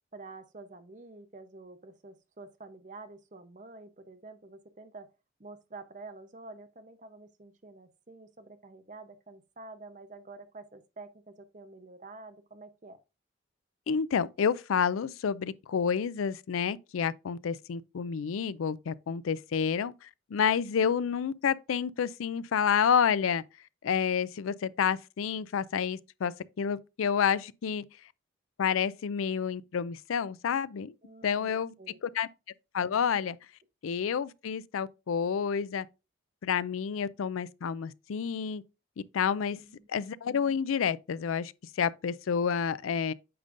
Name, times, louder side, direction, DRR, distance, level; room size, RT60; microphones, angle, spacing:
voice 1, 0.1-5.1 5.4-13.0 31.0-32.0 39.5-39.9, right 3 dB, 35° right, 0.8 m, -48 dB
voice 2, 13.9-23.4 23.8-27.9 28.6-30.9 31.2-31.7 32.0-32.3 32.7-33.4 33.8-35.9 36.4-38.6 39.1-39.6 39.9-43.1, left 7 dB, 90° left, 0.4 m, -29 dB
8.6 x 5.3 x 2.5 m
head